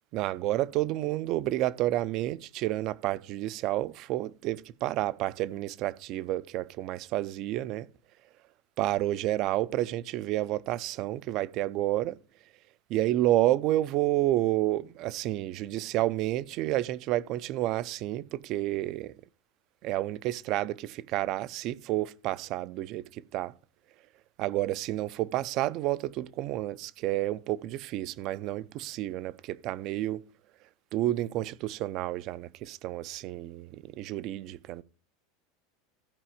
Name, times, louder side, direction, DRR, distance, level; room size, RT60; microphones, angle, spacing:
voice 1, 0.1-7.9 8.8-12.2 12.9-19.1 19.8-23.5 24.4-30.2 30.9-34.8, right 15 dB, 40° right, 0.5 m, -30 dB
15.0 x 5.1 x 4.9 m
supercardioid pair, 165°, 0 cm